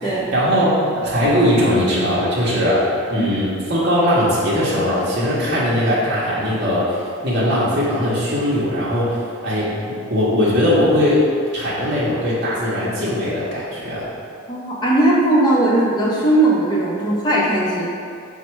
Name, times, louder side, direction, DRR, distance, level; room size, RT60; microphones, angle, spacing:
voice 1, 0.0-2.8 3.1-9.2 9.4-9.7 10.1-11.3 11.5-14.1, equal, 50° right, -8 dB, 0.7 m, -19 dB
voice 2, 14.5-17.9, right 1 dB, 20° left, -6 dB, 0.6 m, -18 dB
4.3 x 2.1 x 4.4 m, 2.4 s
head